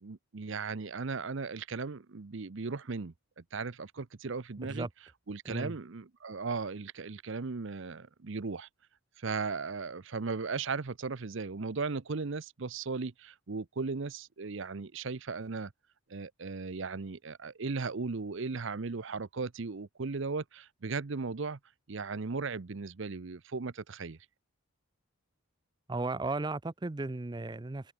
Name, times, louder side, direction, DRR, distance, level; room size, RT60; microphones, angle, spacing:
voice 1, 0.0-4.9 5.3-8.7 9.2-15.7 16.1-21.6 21.9-24.2, right 4 dB, 55° right, 0.7 m, -37 dB
voice 2, 25.9-27.9, right 2 dB, 20° right, 0.5 m, -35 dB
open air
head